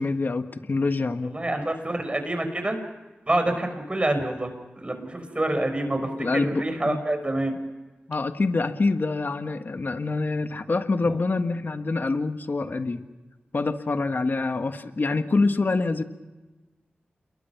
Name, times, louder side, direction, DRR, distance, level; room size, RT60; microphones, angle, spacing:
voice 1, 0.0-1.3 6.2-7.0 8.1-13.0 13.5-16.0, left 3 dB, 60° left, 8 dB, 1.6 m, -26 dB
voice 2, 1.2-2.8 3.3-4.5 4.8-7.6 11.0-11.2, right 1 dB, 30° right, 7 dB, 5.6 m, -27 dB
28.0 x 22.5 x 6.0 m, 1.2 s
cardioid pair, 45°, 4 cm